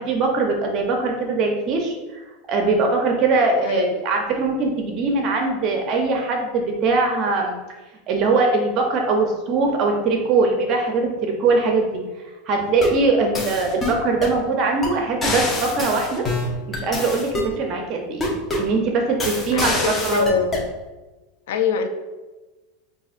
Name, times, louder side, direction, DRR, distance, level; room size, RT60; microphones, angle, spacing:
voice 1, 0.0-1.9 2.5-7.6 8.1-12.0 12.5-16.2 16.7-18.2 18.6-20.3, right 3 dB, 45° right, 2 dB, 0.5 m, -21 dB
sound 1, 12.6-13.0 13.4-14.4 14.8-14.9 15.2-17.5 18.2-18.7 19.2-20.7, left 2 dB, 20° left, 0.8 m, -26 dB
voice 2, 19.5-20.7 21.5-21.9, left 6 dB, 80° left, 6 dB, 0.4 m, -23 dB
5.3 x 2.4 x 2.5 m, 1.2 s
supercardioid pair, 120°, 0 cm